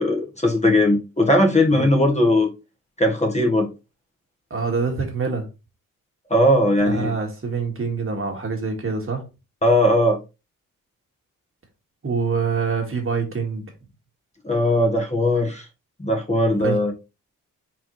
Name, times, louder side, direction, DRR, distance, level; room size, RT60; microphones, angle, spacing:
voice 1, 0.0-2.5 3.0-3.7 6.3-7.1 9.6-10.2 14.4-15.6 16.0-16.9, left 1 dB, 20° left, 1.3 m, -19 dB
voice 2, 4.5-5.5 6.9-9.2 12.0-13.6 16.6-16.8, right 5 dB, 40° right, 1.8 m, -25 dB
4.3 x 4.0 x 3.1 m
supercardioid pair, 60°, 34 cm